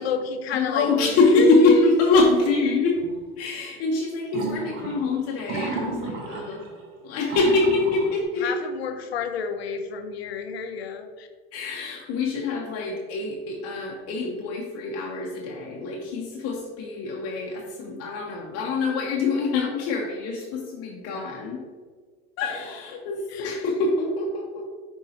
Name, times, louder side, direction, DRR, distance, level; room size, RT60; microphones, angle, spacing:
voice 1, 0.0-1.9 8.4-11.3 23.3-23.6, left 6 dB, 85° left, 7 dB, 0.7 m, -30 dB
voice 2, 0.5-3.0 3.4-6.7 7.0-8.5 11.5-21.6 22.4-24.7, left 3 dB, 50° left, -1 dB, 1.0 m, -24 dB
sound 1, 1.2-1.4 2.1-2.5 3.0-3.1 4.3-6.8 7.2-8.2, right 3 dB, 45° right, 1.2 m, -33 dB
7.1 x 4.7 x 2.9 m, 1.5 s
hypercardioid pair, 90°, 30 cm